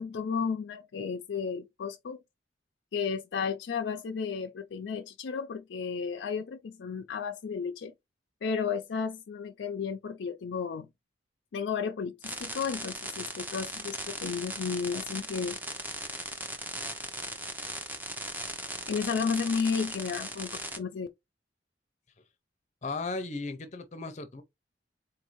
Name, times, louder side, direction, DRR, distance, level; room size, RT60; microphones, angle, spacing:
voice 1, 0.0-2.2 2.9-7.9 8.4-10.9 11.5-15.6 18.9-20.5 20.8-21.1, left 6 dB, 85° left, 0.4 m, -33 dB
sound 1, 12.2-20.8, right 1 dB, 10° right, 0.6 m, -38 dB
voice 2, 22.8-24.4, left 3 dB, 40° left, 0.6 m, -36 dB
4.0 x 2.6 x 3.0 m
head